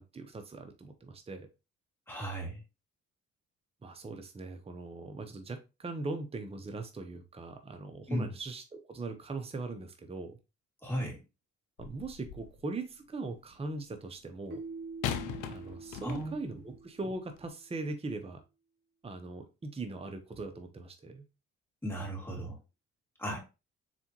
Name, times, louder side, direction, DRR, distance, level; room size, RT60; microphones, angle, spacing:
voice 1, 0.0-1.5 3.8-10.4 11.8-14.6 15.5-18.4 19.0-21.2, right 3 dB, 20° right, 7 dB, 0.7 m, -40 dB
voice 2, 2.1-2.6 8.1-8.3 10.8-11.2 16.0-16.3 21.8-22.6 23.2-23.4, equal, 10° left, -3 dB, 2.3 m, -35 dB
sound 1, 11.8-12.6 15.0-16.6 17.4-17.5, left 9 dB, 90° left, 0.6 m, -39 dB
Keyboard (musical), 14.5-17.3, right 3 dB, 40° right, 1.5 m, -45 dB
4.3 x 3.4 x 2.9 m, 0.28 s
cardioid pair, 90°, 30 cm